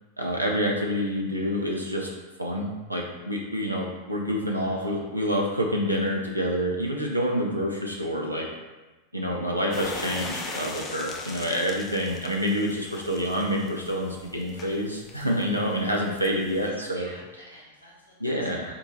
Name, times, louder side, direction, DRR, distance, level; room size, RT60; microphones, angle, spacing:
voice 1, 0.2-2.1 2.4-8.5 9.1-17.1 18.2-18.7, equal, 85° right, -1 dB, 0.4 m, -27 dB
voice 2, 4.5-4.9 16.6-18.8, equal, 85° left, -5 dB, 1.0 m, -48 dB
sound 1, 9.7-16.7, left 3 dB, 25° left, 0.5 m, -40 dB
3.7 x 2.4 x 3.8 m, 1.2 s
figure-of-eight pair, 90°, 0 cm